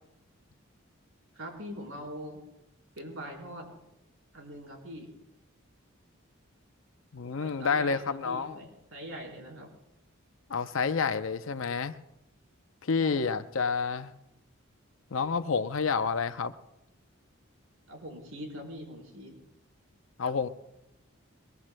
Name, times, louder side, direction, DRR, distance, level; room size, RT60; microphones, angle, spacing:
voice 1, 1.4-2.4 3.0-3.7 4.3-5.2 7.4-9.7 13.0-13.4 17.9-19.4, equal, 75° right, 4.0 m, -42 dB
voice 2, 7.1-8.6 10.5-11.9 12.8-14.1 15.1-16.5 20.2-20.5, left 5 dB, 70° left, 0.6 m, -29 dB
22.5 x 21.0 x 2.2 m
head